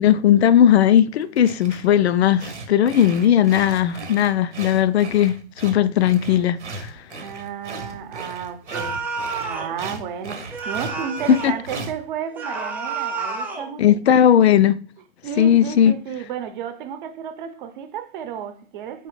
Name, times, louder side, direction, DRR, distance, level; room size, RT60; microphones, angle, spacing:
voice 1, 0.0-6.9 11.3-11.5 13.8-14.8 15.4-15.9, left 10 dB, 70° left, 0.5 m, -17 dB
sound 1, 1.2-1.9 2.4-12.0, right 3 dB, 90° right, 1.0 m, -37 dB
voice 2, 7.1-9.1 9.4-14.2 15.2-19.1, right 8 dB, 45° right, 0.8 m, -33 dB
sound 2, 8.7-9.7 10.5-11.6 12.3-13.7, right 4 dB, 5° right, 0.6 m, -29 dB
4.5 x 3.4 x 3.1 m
hypercardioid pair, 115°, 34 cm